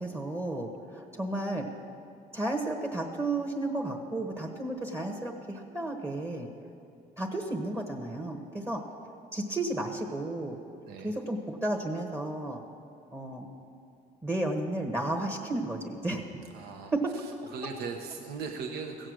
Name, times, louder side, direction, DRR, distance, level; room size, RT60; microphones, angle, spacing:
voice 1, 0.0-1.6 2.3-6.5 7.2-8.8 9.3-10.6 11.0-12.6 13.1-13.5 14.2-16.3 16.9-17.0, right 2 dB, 15° right, 1 dB, 1.1 m, -33 dB
voice 2, 16.5-19.1, right 5 dB, 70° right, 3 dB, 1.1 m, -39 dB
16.0 x 7.7 x 6.4 m, 2.5 s
cardioid pair, 110°, 17 cm